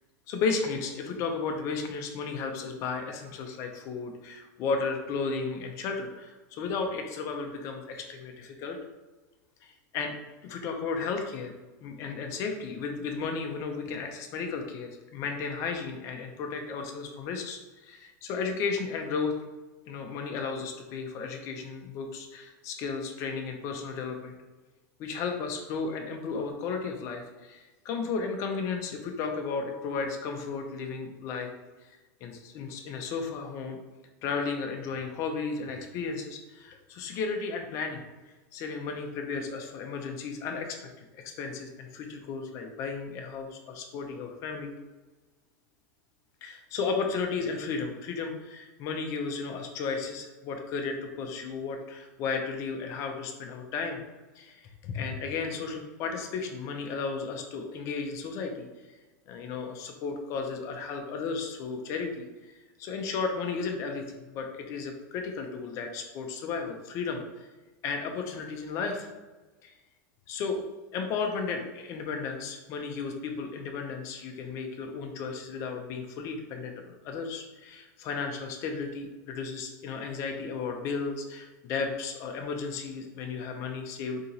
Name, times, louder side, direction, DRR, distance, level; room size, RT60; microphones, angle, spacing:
voice 1, 0.3-8.8 9.6-10.1 10.4-11.5 11.8-19.3 19.9-24.4 25.0-31.5 32.2-33.8 34.2-38.0 38.5-41.0 41.4-44.7 46.4-54.0 54.4-58.7 59.3-62.1 62.8-64.0 64.3-67.2 67.8-69.1 69.6-69.7 70.3-70.6 70.9-84.2, left 5 dB, 30° left, 4 dB, 0.4 m, -34 dB
2.8 x 2.7 x 3.9 m, 1.2 s
supercardioid pair, 165°, 10 cm